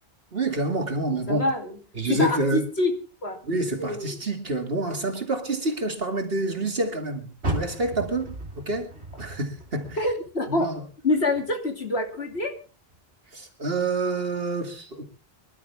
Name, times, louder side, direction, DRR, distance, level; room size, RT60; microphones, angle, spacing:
voice 1, 0.3-1.5 1.9-2.6 3.4-8.9 9.2-10.0 10.5-10.8 13.3-15.0, right 2 dB, 65° right, 2.7 m, -27 dB
voice 2, 1.3-1.8 2.1-2.9 3.2-3.4 3.8-4.2 10.0-10.7 11.0-12.6, left 2 dB, 75° left, 3.0 m, -26 dB
Car, 7.4-10.7 11.1-12.4 12.9-13.0 13.6-13.7, right 1 dB, 90° right, 3.4 m, -35 dB
24.5 x 12.0 x 3.5 m
omnidirectional pair, 1.1 m